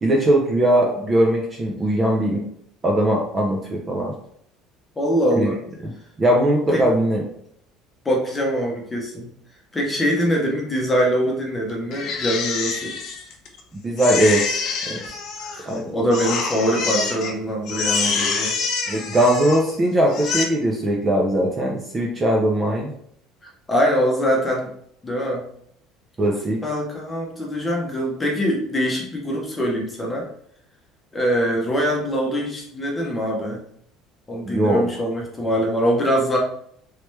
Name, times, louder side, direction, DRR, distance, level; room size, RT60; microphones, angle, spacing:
voice 1, 0.0-2.4 2.8-4.1 5.4-5.5 6.2-7.2 13.8-14.6 14.9-15.0 15.6-16.0 18.9-22.9 26.2-26.6 34.4-34.9, right 1 dB, 20° right, 0 dB, 0.5 m, -20 dB
voice 2, 5.0-5.6 6.7-6.8 8.0-9.3 9.7-12.9 15.4-18.5 23.7-24.7 25.0-25.4 26.6-30.3 31.1-33.6 34.3-36.4, equal, 15° left, -2 dB, 1.0 m, -23 dB
Crying sobbing, 11.9-13.6 14.0-15.8 16.1-17.3 17.6-19.7 20.1-20.4, left 5 dB, 50° left, 0.6 m, -26 dB
3.2 x 3.0 x 3.1 m, 0.68 s
cardioid pair, 150°, 0 cm